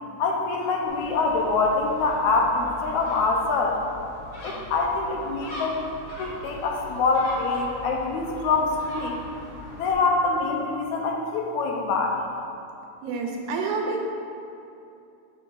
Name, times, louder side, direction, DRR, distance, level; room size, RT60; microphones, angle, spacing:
voice 1, 0.2-3.8 4.4-5.8 6.2-9.1 9.8-12.2, left 3 dB, 80° left, 1 dB, 1.9 m, -25 dB
Gull seagull, 0.8-9.9, equal, 55° left, 1.1 m, -41 dB
voice 2, 13.0-14.1, right 3 dB, 80° right, 1 dB, 2.1 m, -28 dB
6.8 x 5.1 x 3.8 m, 2.7 s
omnidirectional pair, 3.4 m